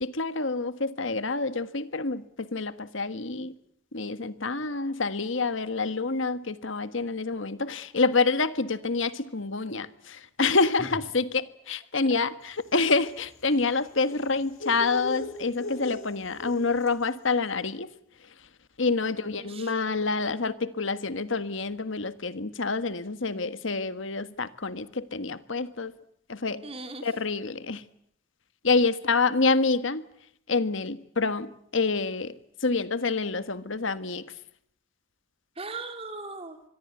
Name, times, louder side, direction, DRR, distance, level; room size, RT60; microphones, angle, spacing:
voice 1, 0.0-3.5 3.9-17.9 18.8-26.0 26.3-26.7 27.0-27.8 28.6-30.1 30.5-34.3, left 3 dB, 70° left, 1.5 m, -27 dB
sound 1, 12.5-17.1, left 2 dB, 90° left, 4.8 m, -40 dB
voice 2, 19.0-19.8 26.6-27.1 35.6-36.6, right 3 dB, 30° right, 3.5 m, -39 dB
26.0 x 22.5 x 8.2 m
head